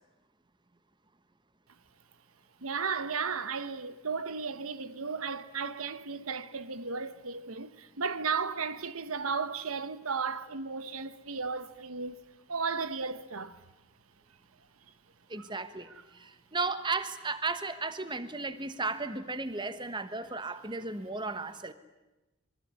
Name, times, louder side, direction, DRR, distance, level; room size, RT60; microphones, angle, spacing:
voice 1, 2.6-12.2 12.5-13.6 15.4-15.5, right 5 dB, 85° right, 1.2 m, -34 dB
voice 2, 15.3-21.7, right 3 dB, 20° right, 1.2 m, -35 dB
26.0 x 23.5 x 9.6 m
head